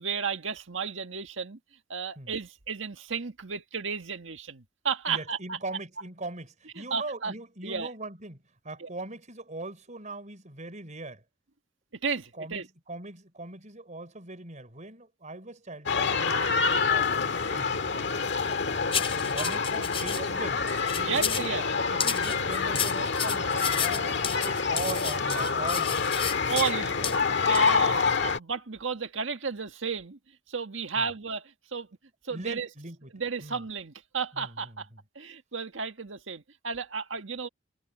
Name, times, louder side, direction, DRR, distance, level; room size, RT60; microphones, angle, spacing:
voice 1, 0.0-1.6 1.9-5.6 6.9-7.3 7.6-7.9 8.8-8.9 12.0-12.7 21.0-21.7 26.5-27.2 27.5-30.2 30.5-31.4 31.7-31.9 32.2-32.7 33.1-34.9 35.2-37.5, right 5 dB, 80° right, 1.7 m, -33 dB
voice 2, 5.1-11.2 12.4-16.4 16.7-19.0 19.3-20.6 20.9-21.4 21.9-26.3 31.0-31.1 32.3-33.6 34.3-35.0, right 2 dB, 40° right, 6.0 m, -41 dB
sound 1, 15.9-28.4, left 5 dB, 65° left, 1.8 m, -27 dB
sound 2, 18.9-20.2 20.7-21.5 22.0-26.7 27.0-27.2 27.5-27.7, left 7 dB, 30° left, 3.4 m, -32 dB
head